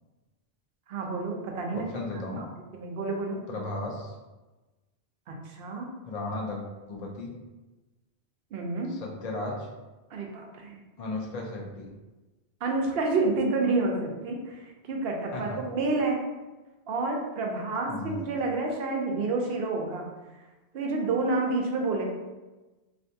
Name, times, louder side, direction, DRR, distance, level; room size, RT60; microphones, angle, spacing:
voice 1, 0.9-1.9 2.1-2.5 2.7-3.4 5.3-5.9 8.5-8.9 10.1-10.8 12.6-16.2 16.9-20.1 20.7-22.0, right 3 dB, 70° right, 1 dB, 0.8 m, -29 dB
voice 2, 1.7-2.4 3.5-4.1 6.0-7.3 8.9-9.7 11.0-11.9 15.3-15.4 17.9-18.3, left 2 dB, 55° left, -1 dB, 0.5 m, -35 dB
3.3 x 2.5 x 2.7 m, 1.1 s
omnidirectional pair, 1.1 m